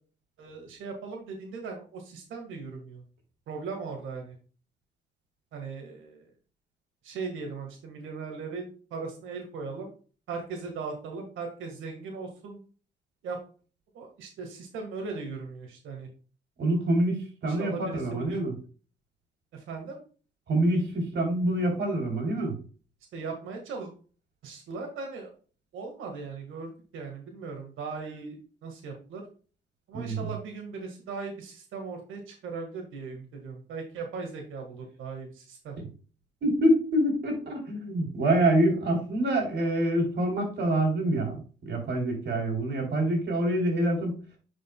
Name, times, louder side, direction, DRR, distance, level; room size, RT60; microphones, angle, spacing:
voice 1, 0.4-3.0 3.5-4.3 5.5-6.2 7.0-9.9 10.3-12.6 13.2-13.4 13.9-16.1 17.4-18.0 18.3-18.4 19.7-20.0 23.1-23.9 24.4-25.3 25.7-29.2 29.9-35.7, right 4 dB, 80° right, 3 dB, 1.7 m, -38 dB
voice 2, 16.6-17.2 17.4-18.5 20.5-22.6 29.9-30.3 35.8-35.9 36.4-44.2, right 1 dB, 60° right, 2 dB, 3.4 m, -26 dB
9.5 x 5.1 x 2.3 m, 0.38 s
cardioid pair, 90°, 20 cm